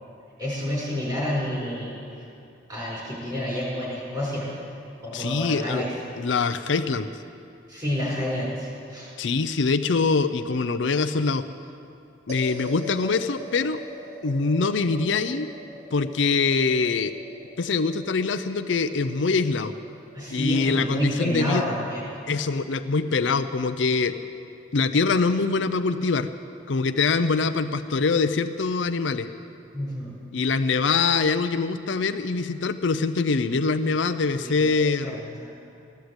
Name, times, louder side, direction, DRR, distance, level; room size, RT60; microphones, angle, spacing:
voice 1, 0.4-2.3 2.7-4.5 5.0-5.9 7.7-9.1 20.1-22.1 29.7-30.1 34.4-35.5, left 1 dB, 20° right, -5 dB, 5.2 m, -29 dB
voice 2, 5.1-5.8 6.2-7.1 9.2-11.4 12.3-13.8 14.2-15.5 15.9-17.1 17.6-19.7 20.3-21.6 22.3-24.2 24.7-26.3 26.7-29.3 30.3-35.4, left 4 dB, 70° left, 10 dB, 0.6 m, -24 dB
sound 1, 12.3-22.7, equal, 40° right, 2.2 m, -43 dB
15.0 x 11.5 x 8.0 m, 2.6 s
head